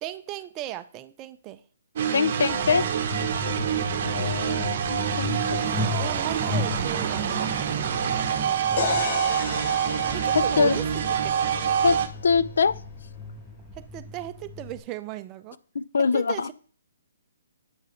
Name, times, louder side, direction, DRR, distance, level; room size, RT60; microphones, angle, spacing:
voice 1, 0.0-1.6 3.1-3.2 5.9-7.6 8.3-8.8 10.0-11.5 13.8-15.6 16.1-16.5, right 14 dB, 25° right, 0.5 m, -37 dB
sound 1, 2.0-12.1, right 8 dB, 50° right, 0.8 m, -26 dB
voice 2, 2.1-2.8 4.0-5.7 10.3-10.8 11.8-12.0 12.2-12.8 15.7-16.5, left 5 dB, 70° left, 0.3 m, -24 dB
Truck, 2.5-14.8, left 2 dB, 5° right, 0.8 m, -35 dB
sound 2, 8.8-12.6, left 6 dB, 50° left, 0.7 m, -34 dB
7.9 x 4.7 x 3.1 m
hypercardioid pair, 140°, 0 cm